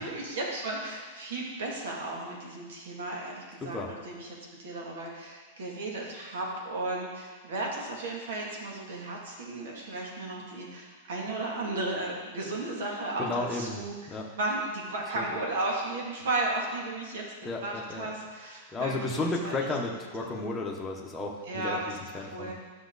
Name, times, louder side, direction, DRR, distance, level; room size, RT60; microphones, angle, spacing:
voice 1, 0.0-3.8 4.0-17.2 17.6-19.5 20.2-20.6 21.5-22.5, right 2 dB, 80° right, -2 dB, 2.4 m, -34 dB
voice 2, 13.2-13.8 14.1-14.3 15.1-15.2 17.4-18.1 18.7-22.5, left 2 dB, 5° left, -2 dB, 0.9 m, -33 dB
11.5 x 6.1 x 4.0 m, 1.5 s
supercardioid pair, 170°, 0 cm